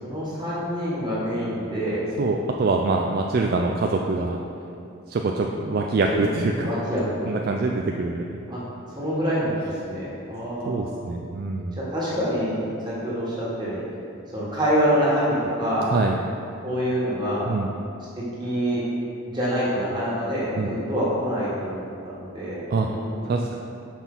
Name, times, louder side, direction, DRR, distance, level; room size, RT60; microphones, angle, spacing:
voice 1, 0.0-2.0 6.6-7.3 8.5-8.6 8.9-10.9 11.9-12.5 12.8-13.8 14.3-15.9 16.6-17.4 18.4-18.8 19.3-23.3, equal, 20° right, -8 dB, 1.6 m, -26 dB
voice 2, 2.2-4.4 5.1-6.7 7.2-8.4 10.7-11.8 15.9-16.2 17.5-17.7 20.6-20.7 22.7-22.9 23.3-23.6, right 3 dB, 45° right, 1 dB, 0.3 m, -24 dB
5.9 x 4.4 x 5.5 m, 2.6 s
head